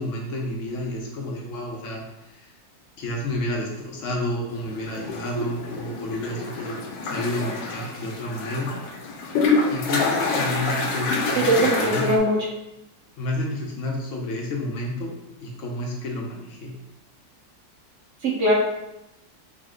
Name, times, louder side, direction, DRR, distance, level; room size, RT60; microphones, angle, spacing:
voice 1, 0.0-2.0 2.3-2.5 3.0-8.7 9.7-12.1 13.2-15.1 15.4-16.7, left 1 dB, 60° left, -2 dB, 0.9 m, -30 dB
sound 1, 4.6-12.2, left 3 dB, 85° left, 1.3 m, -27 dB
voice 2, 11.4-12.4 18.2-18.5, right 1 dB, 50° right, -2 dB, 1.1 m, -20 dB
5.1 x 2.0 x 3.6 m, 0.91 s
omnidirectional pair, 2.0 m